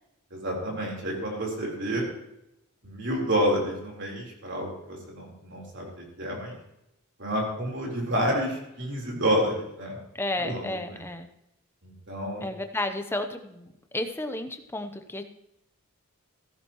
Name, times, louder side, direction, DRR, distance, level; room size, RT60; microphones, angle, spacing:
voice 1, 0.3-2.1 2.8-5.9 6.2-6.5 7.2-10.0 10.4-11.0 11.8-12.5, equal, 55° right, -1 dB, 4.0 m, -29 dB
voice 2, 10.1-11.3 12.4-13.7 13.9-15.2, left 1 dB, 10° left, 7 dB, 0.8 m, -32 dB
15.0 x 13.5 x 3.1 m, 0.83 s
head